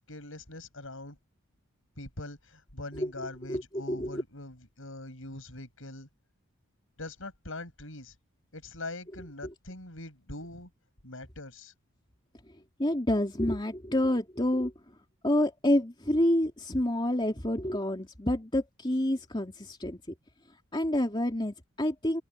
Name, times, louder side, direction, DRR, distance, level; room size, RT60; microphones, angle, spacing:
voice 1, 0.1-1.2 2.0-6.1 7.0-8.1 8.5-10.7 11.0-11.7, left 2 dB, 60° left, 7.3 m, -42 dB
voice 2, 3.9-4.2 12.8-14.7 15.2-20.0 20.7-22.2, left 1 dB, 20° left, 2.9 m, -28 dB
head